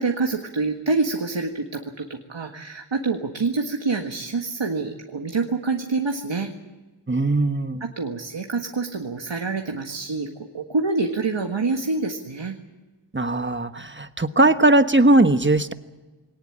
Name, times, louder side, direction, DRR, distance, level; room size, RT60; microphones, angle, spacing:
voice 1, 0.0-6.5 7.8-12.6, right 3 dB, 75° right, 3 dB, 1.8 m, -26 dB
voice 2, 7.1-7.8 13.1-15.7, right 2 dB, 25° right, 9 dB, 1.3 m, -19 dB
22.0 x 18.5 x 8.8 m, 1.2 s
wide cardioid pair, 65°, 46 cm